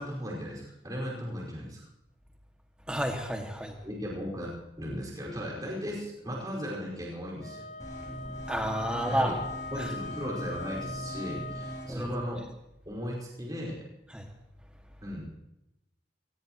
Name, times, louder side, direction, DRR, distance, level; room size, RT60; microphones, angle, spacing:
voice 1, 0.0-1.8 3.8-7.7 9.1-9.4 9.7-12.5 12.8-13.8 15.0-15.4, equal, 20° right, -4 dB, 5.2 m, -36 dB
voice 2, 2.9-3.7 8.5-9.4 9.8-9.9 11.9-12.1 14.1-14.3, right 1 dB, 5° right, 2 dB, 2.1 m, -30 dB
Wind instrument woodwind instrument, 7.4-11.9, left 3 dB, 75° left, 1.5 m, -40 dB
sound 1, 7.8-12.2, right 1 dB, 20° left, 3.6 m, -41 dB
23.0 x 19.5 x 3.1 m, 0.90 s
head